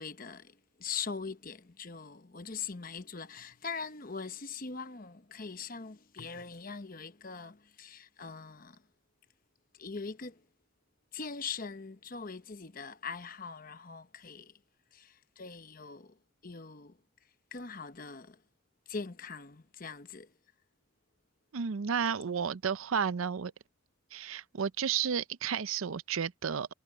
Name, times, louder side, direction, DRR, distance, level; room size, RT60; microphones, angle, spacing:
voice 1, 0.0-8.8 9.8-10.4 11.1-14.5 14.9-16.1 16.4-17.0 17.5-18.4 18.9-20.3, left 5 dB, 45° left, 1.0 m, -42 dB
voice 2, 21.5-23.5 24.1-26.7, right 7 dB, 80° right, 0.5 m, -32 dB
head